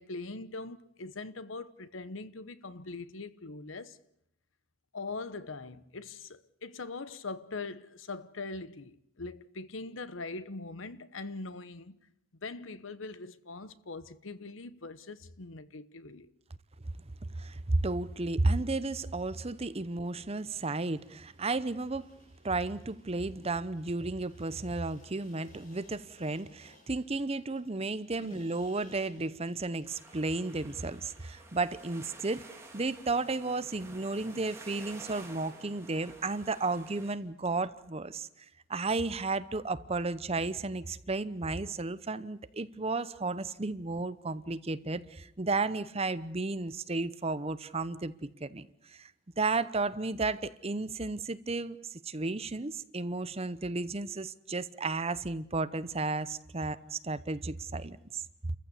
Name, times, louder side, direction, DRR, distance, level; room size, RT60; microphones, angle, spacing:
voice 1, 0.0-4.0 4.9-12.0 12.4-16.3 28.2-28.4, left 3 dB, 75° left, 1.1 m, -42 dB
voice 2, 17.2-22.1 22.4-32.4 32.7-38.3 38.7-49.1 49.4-58.5, right 3 dB, 30° right, 0.8 m, -33 dB
sound 1, 20.7-31.5, left 2 dB, 45° left, 5.1 m, -63 dB
sound 2, 29.9-37.1, right 2 dB, 15° right, 3.2 m, -51 dB
30.0 x 15.0 x 8.3 m
head